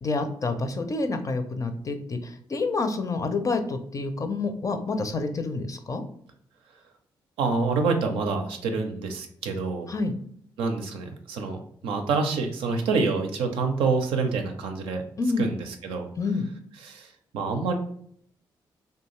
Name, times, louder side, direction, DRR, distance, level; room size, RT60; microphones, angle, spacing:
voice 1, 0.0-6.0 9.9-10.1 15.2-15.4 16.2-16.5, left 3 dB, 40° left, 7 dB, 0.5 m, -28 dB
voice 2, 7.4-9.9 10.6-15.0 15.4-16.1 16.8-17.8, right 4 dB, 85° right, 4 dB, 0.4 m, -27 dB
2.6 x 2.2 x 3.0 m, 0.65 s
supercardioid pair, 55°, 9 cm